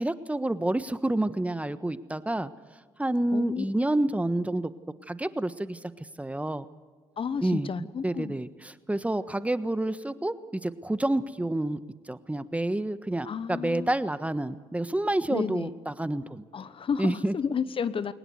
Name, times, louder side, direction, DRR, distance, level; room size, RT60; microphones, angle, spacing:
voice 1, 0.0-2.5 3.0-4.7 5.1-5.8 6.2-6.6 7.4-7.7 8.0-11.8 12.1-16.4 17.0-17.3, right 1 dB, 10° right, 1.3 m, -28 dB
voice 2, 3.3-3.6 7.2-8.4 13.2-13.9 15.3-15.7 16.5-18.1, left 6 dB, 45° left, 1.1 m, -31 dB
22.5 x 19.5 x 8.1 m
hypercardioid pair, 55°, 13 cm